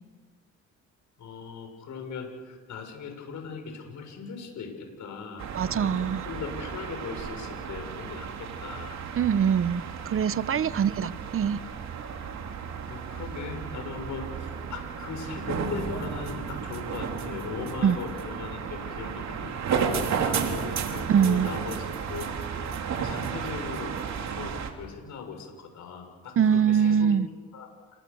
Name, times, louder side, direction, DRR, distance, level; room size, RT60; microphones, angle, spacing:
voice 1, 1.2-9.0 10.5-10.9 12.9-22.5 23.0-23.9 24.3-27.1 27.5-27.7, left 5 dB, 75° left, 4 dB, 6.8 m, -39 dB
sound 1, 5.4-24.7, right 7 dB, 65° right, 3.4 m, -33 dB
voice 2, 5.5-6.3 9.2-11.6 17.8-18.0 21.1-21.5 26.4-27.3, right 8 dB, 45° right, 17 dB, 0.9 m, -23 dB
29.0 x 23.5 x 7.1 m, 1.4 s
cardioid pair, 90°, 30 cm